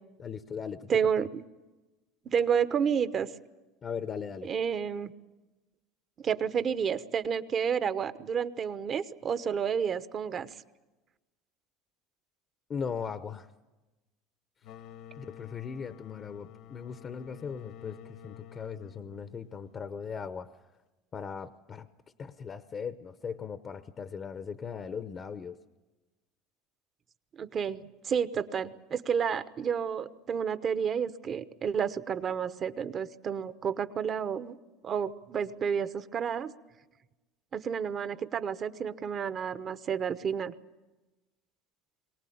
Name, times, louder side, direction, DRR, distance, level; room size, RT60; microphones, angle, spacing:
voice 1, 0.2-0.9 3.8-4.5 12.7-13.5 15.2-20.5 21.1-21.9 22.2-25.6, left 6 dB, 30° left, 11 dB, 0.8 m, -38 dB
voice 2, 0.9-1.4 2.3-3.3 4.4-5.1 6.2-10.5 27.3-34.6 34.8-36.5 37.5-40.5, right 7 dB, 35° right, 13 dB, 1.0 m, -30 dB
sound 1, 14.6-20.1, left 9 dB, 60° left, 1.2 m, -50 dB
22.5 x 18.5 x 8.6 m, 1.1 s
supercardioid pair, 125°, 0 cm